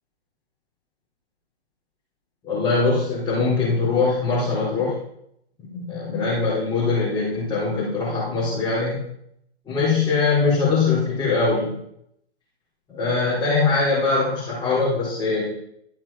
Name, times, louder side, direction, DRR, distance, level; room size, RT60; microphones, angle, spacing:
voice 1, 2.4-5.0 5.7-9.0 9.7-11.7 12.9-15.4, left 4 dB, 15° left, -8 dB, 3.9 m, -22 dB
12.5 x 5.9 x 5.7 m, 0.74 s
hypercardioid pair, 140°, 34 cm